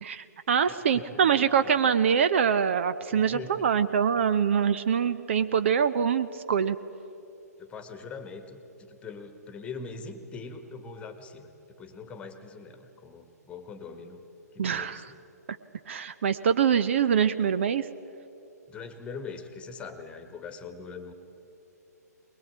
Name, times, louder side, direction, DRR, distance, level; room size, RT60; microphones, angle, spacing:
voice 1, 0.0-6.8 14.6-15.1 15.9-17.9, right 7 dB, 45° right, 13 dB, 0.7 m, -24 dB
voice 2, 0.6-1.7 3.1-3.7 7.6-11.5 11.8-14.2 14.5-15.2 18.7-21.1, left 4 dB, 10° left, 9 dB, 1.5 m, -42 dB
21.5 x 21.5 x 9.3 m, 2.8 s
figure-of-eight pair, 125°, 9 cm